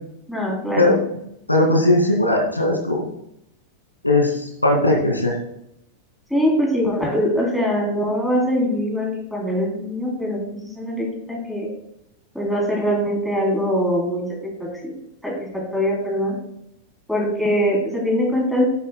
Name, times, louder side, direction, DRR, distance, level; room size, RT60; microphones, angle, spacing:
voice 1, 0.3-0.9 6.3-11.7 12.3-14.9 15.2-16.4 17.1-18.7, equal, ahead, -1 dB, 3.3 m, -22 dB
voice 2, 1.5-3.1 4.0-5.4, left 2 dB, 85° left, 0 dB, 2.3 m, -18 dB
11.0 x 11.0 x 2.2 m, 0.79 s
figure-of-eight pair, 90°, 0 cm